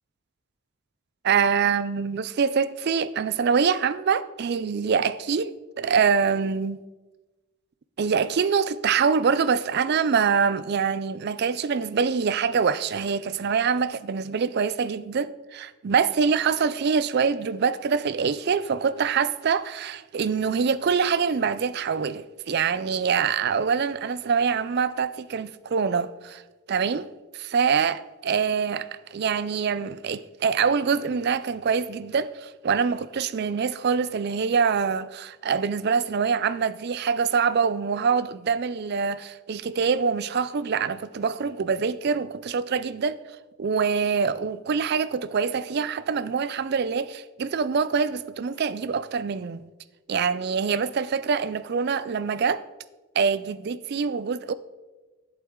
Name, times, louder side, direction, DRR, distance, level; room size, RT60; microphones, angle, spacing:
voice 1, 1.2-6.8 8.0-26.4 26.7-27.1 27.3-43.2 43.6-49.6 50.1-52.6 53.2-54.5, right 6 dB, 50° right, 0.4 m, -25 dB
10.5 x 8.2 x 3.7 m
head